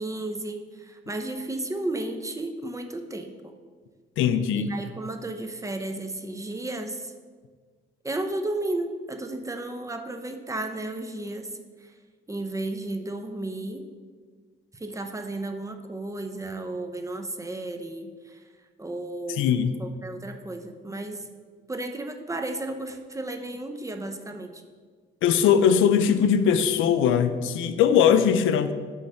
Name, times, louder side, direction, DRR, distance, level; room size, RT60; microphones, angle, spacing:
voice 1, 0.0-3.5 4.5-7.1 8.0-11.5 11.8-11.9 12.3-13.9 14.7-18.4 18.8-21.3 21.7-24.6, right 2 dB, 15° right, 6 dB, 0.7 m, -33 dB
voice 2, 4.2-4.7 19.4-19.7 25.2-28.7, left 8 dB, 85° left, 11 dB, 0.5 m, -20 dB
8.5 x 3.2 x 6.5 m, 1.5 s
cardioid pair, 90°, 20 cm